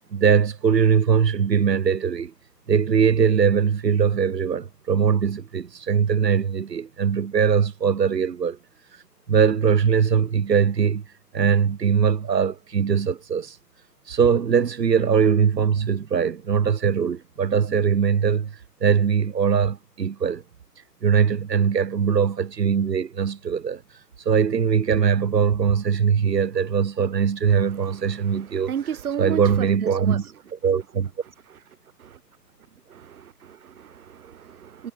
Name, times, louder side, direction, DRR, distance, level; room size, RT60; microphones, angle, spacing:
voice 1, 0.1-2.3 2.7-8.6 9.3-11.0 11.3-13.6 14.1-20.4 21.0-23.8 24.3-28.7 29.2-30.2 30.6-31.1, right 7 dB, 85° right, 1.7 m, -21 dB
voice 2, 27.5-30.2 31.5-31.6 32.0-32.2 32.9-34.9, right 8 dB, 60° right, 1.7 m, -34 dB
hypercardioid pair, 155°, 48 cm